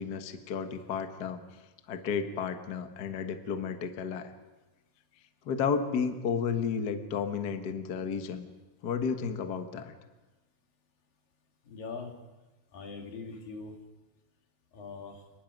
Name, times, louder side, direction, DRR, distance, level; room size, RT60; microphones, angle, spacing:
voice 1, 0.0-1.4 1.9-4.3 5.4-8.5 8.8-9.9, left 6 dB, 55° left, 7 dB, 1.1 m, -32 dB
voice 2, 11.6-12.1 12.7-13.8 14.7-15.2, left 4 dB, 80° left, 2 dB, 4.3 m, -41 dB
29.5 x 20.5 x 5.3 m, 1.1 s
omnidirectional pair, 3.9 m